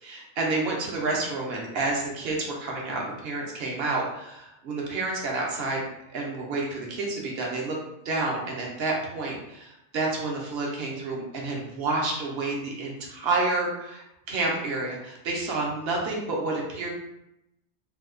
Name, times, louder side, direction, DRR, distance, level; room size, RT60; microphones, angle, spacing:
voice 1, 0.0-5.8 6.1-7.8 8.0-16.9, right 3 dB, 65° right, -2 dB, 1.0 m, -29 dB
2.8 x 2.3 x 3.6 m, 0.84 s
omnidirectional pair, 1.2 m